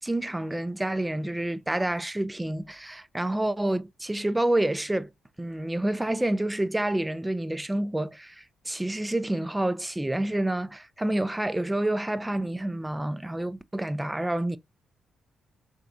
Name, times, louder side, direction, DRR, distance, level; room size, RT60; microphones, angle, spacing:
voice 1, 0.0-5.1 5.4-14.6, right 1 dB, 15° right, 0.4 m, -28 dB
3.4 x 2.9 x 2.5 m
hypercardioid pair, 50°, 0 cm